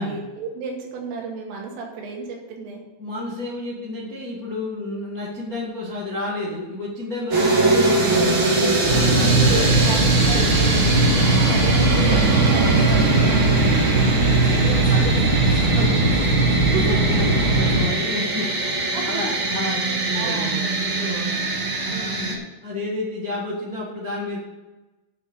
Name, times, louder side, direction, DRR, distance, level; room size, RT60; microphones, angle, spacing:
voice 1, 0.0-2.8 9.3-11.1 11.4-13.8 15.9-16.1 16.6-16.8 18.9-19.2 20.1-20.5 21.9-22.4, right 5 dB, 80° right, 0 dB, 4.7 m, -32 dB
voice 2, 3.0-9.8 11.3-11.6 14.0-15.2 15.6-15.9 16.5-18.5 19.0-21.3 21.8-24.4, left 2 dB, 70° left, -5 dB, 0.8 m, -31 dB
sound 1, 7.3-22.3, right 2 dB, 35° right, 2.5 m, -23 dB
sound 2, 8.8-17.8, right 2 dB, 10° right, 2.8 m, -19 dB
10.0 x 6.4 x 8.2 m, 1.1 s
omnidirectional pair, 5.8 m